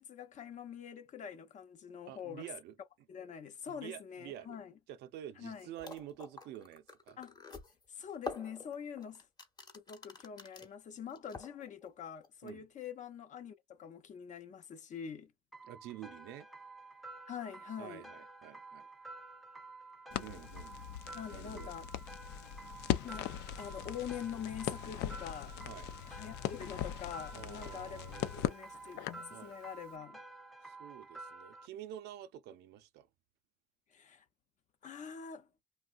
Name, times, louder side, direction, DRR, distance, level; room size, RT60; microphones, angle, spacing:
voice 1, 0.0-2.5 3.1-4.7 5.4-5.7 7.2-7.3 7.9-9.3 9.7-15.3 17.3-18.1 21.1-21.9 23.0-25.7 26.1-28.0 28.3-30.2 33.9-34.2 34.8-35.5, left 8 dB, 45° left, 0.7 m, -45 dB
voice 2, 2.1-2.7 3.7-4.6 4.9-7.2 12.4-12.7 15.6-16.5 17.8-18.9 20.2-20.8 21.3-21.7 25.7-25.9 27.3-28.7 29.3-29.6 30.6-33.1, right 11 dB, 80° right, 0.5 m, -48 dB
sound 1, 5.5-5.6 5.8-10.7 11.1-11.9 12.2-12.5, left 4 dB, 25° left, 1.0 m, -46 dB
sound 2, 15.5-31.7, right 3 dB, ahead, 0.4 m, -51 dB
Crackle, 20.1-29.3, left 12 dB, 80° left, 0.5 m, -40 dB
3.2 x 2.3 x 2.5 m
cardioid pair, 110°, 17 cm